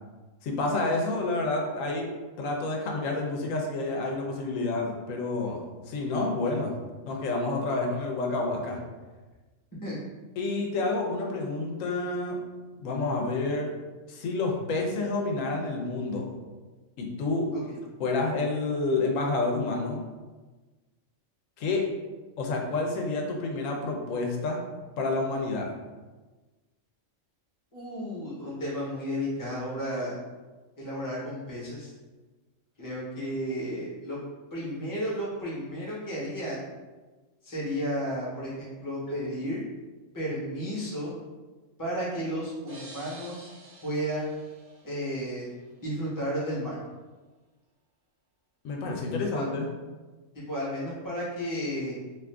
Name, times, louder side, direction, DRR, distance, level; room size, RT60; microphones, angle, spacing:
voice 1, 0.4-2.1 2.4-6.7 7.1-8.8 10.4-12.4 12.8-13.7 14.1-16.3 17.0-17.5 18.0-20.0 21.6-21.9 22.4-24.6 25.0-25.7 48.6-49.7, left 3 dB, 90° left, 1 dB, 1.0 m, -29 dB
voice 2, 27.7-30.2 30.8-31.9 32.8-34.2 34.5-36.6 37.4-39.6 40.1-41.1 41.8-43.5 43.8-44.3 44.8-45.5 45.8-46.8 49.3-49.5 50.3-51.9, equal, 15° left, -7 dB, 0.9 m, -33 dB
sound 1, 42.7-45.4, right 2 dB, 65° right, 1.1 m, -49 dB
2.7 x 2.4 x 3.3 m, 1.3 s
omnidirectional pair, 1.3 m